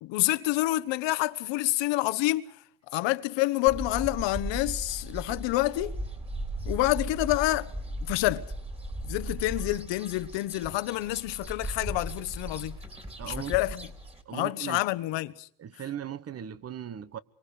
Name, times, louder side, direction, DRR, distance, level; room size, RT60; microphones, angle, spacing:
voice 1, 0.0-2.6 2.9-6.0 6.6-7.7 8.0-8.5 9.0-12.8 13.2-13.9 14.3-15.5, left 18 dB, 65° left, 1.4 m, -28 dB
sound 1, 3.7-14.2, right 1 dB, 15° right, 3.5 m, -37 dB
voice 2, 13.2-13.6 14.3-14.8 15.6-17.2, right 10 dB, 30° right, 1.3 m, -38 dB
27.0 x 24.0 x 5.0 m
cardioid pair, 130°, 46 cm